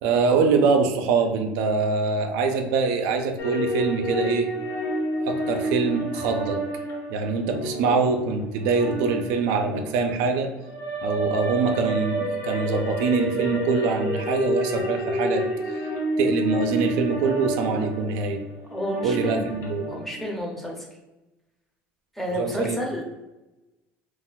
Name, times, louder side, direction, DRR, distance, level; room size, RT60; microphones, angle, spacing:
voice 1, 0.0-4.5 5.2-6.6 7.1-10.5 11.0-15.8 16.2-18.4 19.0-19.9 22.4-22.8, right 4 dB, 85° right, 5 dB, 0.4 m, -24 dB
sound 1, 3.4-20.4, equal, 65° left, 0.8 m, -29 dB
voice 2, 18.7-19.5 19.9-20.9 22.2-23.0, equal, 5° left, 0 dB, 0.5 m, -30 dB
2.4 x 2.2 x 3.9 m, 1.0 s
cardioid pair, 155°, 5 cm